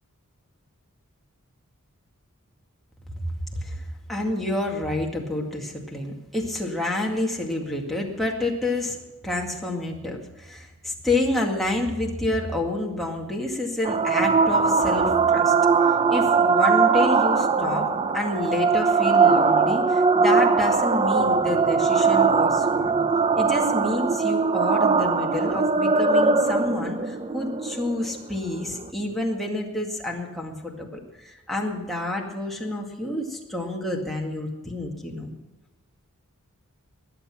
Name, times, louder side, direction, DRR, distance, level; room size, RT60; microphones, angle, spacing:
voice 1, 3.6-9.0 9.2-15.5 16.1-23.0 23.4-35.3, left 1 dB, ahead, -2 dB, 2.1 m, -29 dB
sound 1, 13.8-28.8, right 4 dB, 25° right, 0.5 m, -21 dB
21.0 x 8.2 x 5.8 m, 1.1 s
head